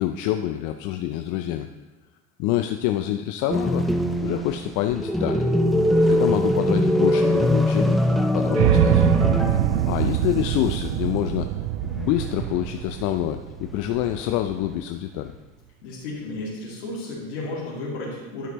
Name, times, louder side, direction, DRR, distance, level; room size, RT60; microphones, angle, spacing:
voice 1, 0.0-1.7 2.4-3.8 4.2-5.5 6.1-9.1 9.7-11.5 11.9-15.3, left 12 dB, 60° left, 7 dB, 0.5 m, -26 dB
sound 1, 3.5-10.0 10.3-10.4 12.1-12.8 13.8-14.5, left 1 dB, ahead, 0.6 m, -22 dB
sound 2, 8.5-14.7, right 13 dB, 65° right, 0.5 m, -24 dB
voice 2, 15.8-18.5, left 2 dB, 80° left, -5 dB, 2.8 m, -33 dB
11.0 x 5.9 x 3.0 m, 1.2 s
hypercardioid pair, 70°, 34 cm